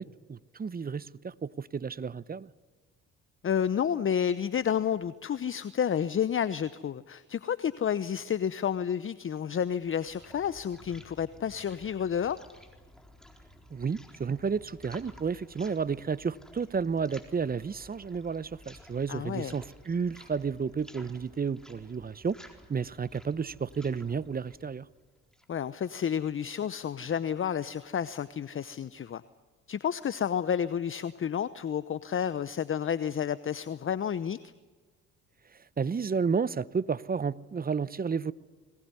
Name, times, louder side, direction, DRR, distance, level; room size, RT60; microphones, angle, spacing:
voice 1, 0.0-2.5 13.7-22.4 22.7-24.9 35.8-38.3, right 5 dB, 25° right, 0.8 m, -32 dB
voice 2, 3.4-12.4 19.1-19.5 25.5-29.2 29.7-34.4, left 8 dB, 40° left, 0.8 m, -30 dB
sound 1, 9.9-25.6, left 1 dB, ahead, 4.0 m, -54 dB
22.0 x 19.0 x 9.7 m
supercardioid pair, 60°, 33 cm